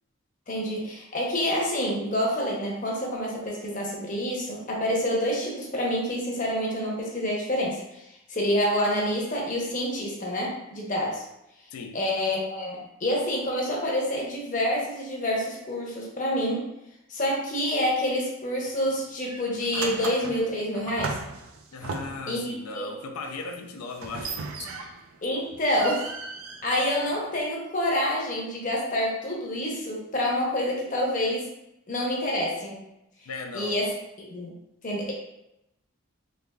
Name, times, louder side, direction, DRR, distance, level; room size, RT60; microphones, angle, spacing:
voice 1, 0.5-8.0 8.3-11.2 11.9-16.7 17.1-21.2 22.3-22.9 25.2-26.1 26.6-31.5 31.9-32.8 33.5-33.9 34.2-34.5 34.8-35.1, left 1 dB, 35° left, -2 dB, 0.7 m, -27 dB
sound 1, 18.6-18.9 19.3-22.4 23.9-25.2 25.5-27.4, right 4 dB, 75° right, 0.4 m, -36 dB
voice 2, 21.7-24.4 33.3-33.8, left 3 dB, 85° left, 3 dB, 0.4 m, -37 dB
3.3 x 3.3 x 2.3 m, 0.87 s
head